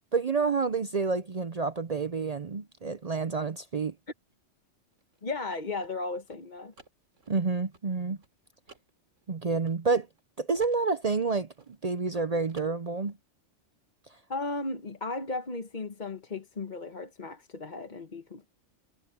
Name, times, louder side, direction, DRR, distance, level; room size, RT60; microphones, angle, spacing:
voice 1, 0.1-3.9 7.3-8.2 9.3-10.1 10.4-11.5 11.8-13.2, right 4 dB, 40° right, 0.6 m, -28 dB
sound 1, 4.9-10.2 10.5-12.2 12.5-13.2, right 3 dB, 85° right, 3.3 m, -57 dB
voice 2, 5.2-6.7 14.3-18.4, left 3 dB, 40° left, 1.3 m, -35 dB
omnidirectional pair, 1.2 m